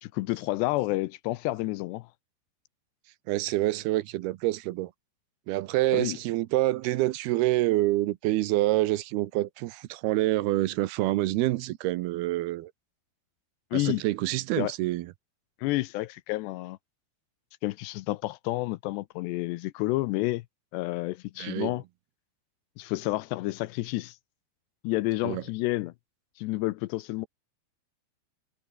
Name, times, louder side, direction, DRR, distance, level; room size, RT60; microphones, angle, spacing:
voice 1, 0.0-2.1 5.9-6.2 13.7-14.0 14.6-14.7 15.6-16.8 17.6-20.4 20.7-21.8 22.8-24.2 24.8-25.9 26.4-27.3, left 19 dB, 85° left, 2.8 m, -30 dB
voice 2, 3.3-4.9 5.5-12.7 13.7-15.1 21.4-21.7 25.2-25.4, right 17 dB, 75° right, 2.5 m, -27 dB
omnidirectional pair, 5.0 m